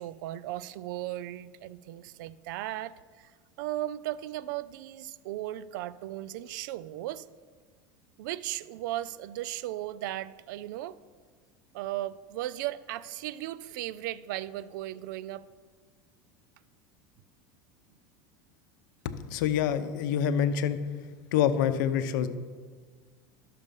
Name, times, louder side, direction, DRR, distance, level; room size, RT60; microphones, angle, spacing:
voice 1, 0.0-7.3 8.2-11.0 11.7-15.5, right 14 dB, 75° right, 17 dB, 0.4 m, -36 dB
voice 2, 19.0-20.8 21.3-22.3, left 9 dB, 80° left, 11 dB, 0.8 m, -26 dB
11.5 x 6.8 x 5.4 m, 1.5 s
supercardioid pair, 135°, 10 cm